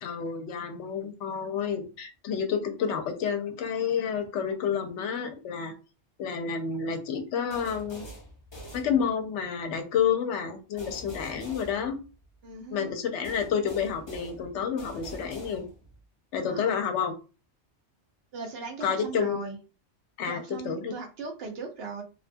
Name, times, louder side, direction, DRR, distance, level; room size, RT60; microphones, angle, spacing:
voice 1, 0.0-5.7 6.2-8.0 8.7-12.0 12.7-15.6 16.3-17.1 18.8-19.4 20.2-20.9, left 7 dB, 85° left, 6 dB, 0.9 m, -29 dB
sound 1, 7.5-9.4 10.8-12.5 13.2-16.0, equal, 30° left, 0.7 m, -45 dB
voice 2, 12.4-12.9 16.4-16.8 18.3-19.6 20.2-22.0, right 4 dB, 65° right, 2 dB, 0.8 m, -38 dB
2.6 x 2.2 x 2.6 m, 0.33 s
omnidirectional pair, 1.2 m